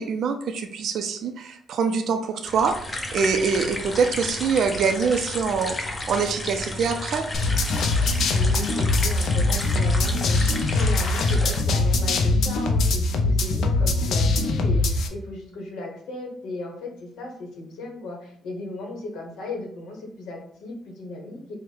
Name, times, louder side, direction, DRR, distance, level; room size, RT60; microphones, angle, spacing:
voice 1, 0.0-2.8 3.1-7.3, right 5 dB, 60° right, 6 dB, 0.4 m, -24 dB
sound 1, 2.4-11.6, left 1 dB, 20° left, 0.6 m, -33 dB
sound 2, 7.3-15.1, left 2 dB, 65° left, 0.5 m, -22 dB
voice 2, 8.3-21.5, left 2 dB, 85° left, 0 dB, 1.0 m, -36 dB
4.6 x 2.1 x 3.2 m, 0.65 s
cardioid pair, 130°, 0 cm